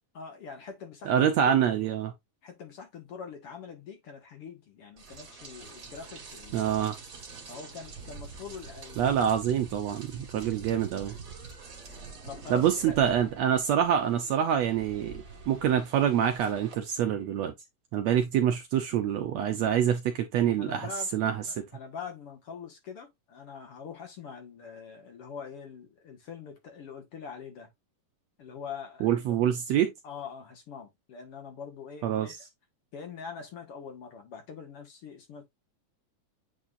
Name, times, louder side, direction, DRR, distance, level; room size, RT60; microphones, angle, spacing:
voice 1, 0.1-1.5 2.4-6.7 7.5-9.2 12.2-13.0 20.6-21.1 21.5-27.7 28.4-29.4 30.0-32.3 32.9-35.5, left 6 dB, 50° left, 2.0 m, -43 dB
voice 2, 1.0-2.1 6.5-6.9 9.0-11.1 12.5-17.5 17.9-21.6 29.0-29.9 32.0-32.3, right 9 dB, 70° right, 1.7 m, -26 dB
Rain, 5.0-16.7, right 4 dB, 35° right, 1.6 m, -45 dB
8.5 x 4.4 x 2.6 m
omnidirectional pair, 3.9 m